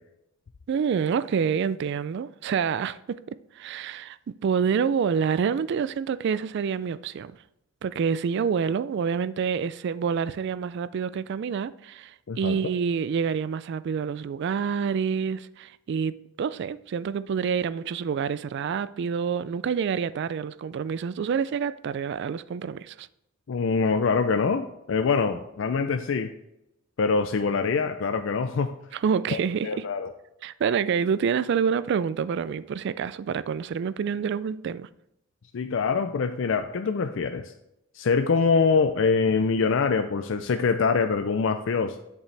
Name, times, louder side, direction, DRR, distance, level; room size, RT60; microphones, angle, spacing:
voice 1, 0.7-7.4 7.8-23.1 28.9-29.9 30.4-34.9, right 6 dB, 60° right, 0.3 m, -27 dB
voice 2, 12.3-12.6 23.5-26.3 27.0-28.7 29.3-29.4 29.6-30.1 35.5-37.5 37.9-42.0, left 5 dB, 70° left, 0.4 m, -24 dB
8.2 x 7.0 x 3.3 m
head